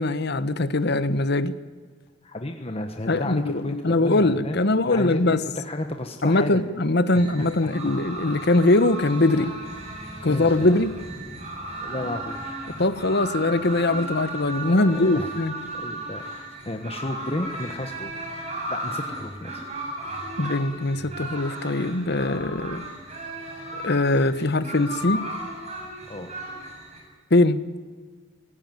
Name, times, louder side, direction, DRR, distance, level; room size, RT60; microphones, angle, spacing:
voice 1, 0.0-1.5 3.1-5.4 6.2-9.5 10.2-10.9 12.8-15.5 20.4-22.8 23.8-25.2 27.3-27.6, left 2 dB, 60° left, 13 dB, 1.2 m, -22 dB
voice 2, 2.2-6.6 7.1-7.7 9.3-9.5 10.3-10.8 11.8-12.6 14.7-15.3 15.7-18.1 18.7-19.6 26.1-26.3, left 1 dB, 30° left, 5 dB, 1.3 m, -33 dB
sound 1, 7.1-27.0, right 1 dB, 35° right, 7.0 m, -35 dB
25.5 x 17.5 x 9.2 m, 1.5 s
head